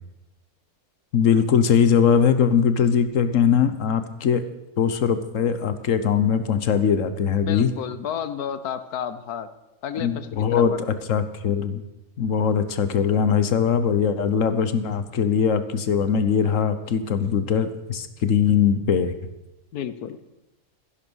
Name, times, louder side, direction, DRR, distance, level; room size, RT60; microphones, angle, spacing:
voice 1, 1.1-4.4 4.8-7.7 10.0-11.8 12.2-19.1, left 7 dB, 60° left, 11 dB, 1.3 m, -21 dB
voice 2, 7.4-9.5 9.8-10.8 19.7-20.2, left 8 dB, 90° left, 12 dB, 1.4 m, -31 dB
15.0 x 11.0 x 6.3 m, 1.0 s
omnidirectional pair, 1.6 m